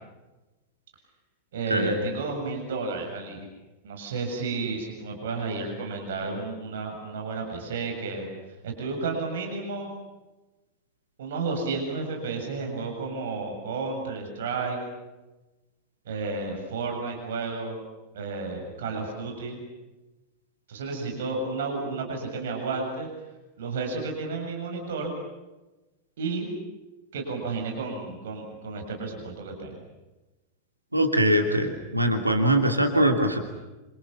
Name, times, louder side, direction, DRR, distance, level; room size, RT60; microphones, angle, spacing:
voice 1, 1.5-3.5 3.8-8.2 8.6-9.9 11.2-14.8 16.0-17.8 18.1-19.6 20.7-23.1 23.6-25.1 26.2-26.5 27.1-29.7, right 3 dB, 60° right, 2 dB, 7.7 m, -32 dB
voice 2, 30.9-33.4, right 1 dB, 85° right, 4 dB, 2.9 m, -22 dB
29.0 x 28.0 x 7.2 m, 1.1 s
figure-of-eight pair, 90°, 0 cm